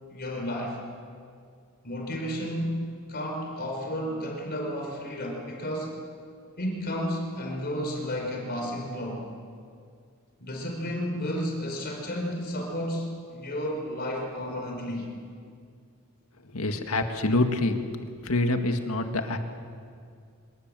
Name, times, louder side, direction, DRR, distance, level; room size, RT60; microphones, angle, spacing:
voice 1, 0.1-0.8 1.8-6.0 6.6-9.3 10.4-15.0, equal, 45° left, 1 dB, 4.5 m, -32 dB
voice 2, 16.5-17.8 18.1-19.4, left 2 dB, 85° left, 6 dB, 1.9 m, -26 dB
25.0 x 18.5 x 7.7 m, 2.3 s
head